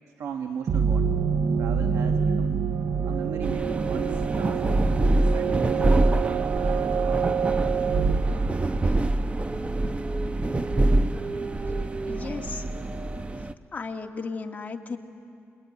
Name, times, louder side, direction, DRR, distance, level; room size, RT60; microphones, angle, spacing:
voice 1, 0.2-1.1 1.6-2.6 3.0-4.6 5.1-7.3, right 7 dB, 85° right, 6 dB, 1.2 m, -37 dB
sound 1, 0.7-9.3, right 6 dB, 55° right, 0.7 m, -26 dB
sound 2, 3.4-13.5, right 2 dB, 25° right, 0.9 m, -25 dB
voice 2, 12.1-12.6 13.7-15.0, left 4 dB, 30° left, 2 dB, 2.0 m, -34 dB
26.5 x 22.0 x 9.6 m, 2.5 s
cardioid pair, 105°, 5 cm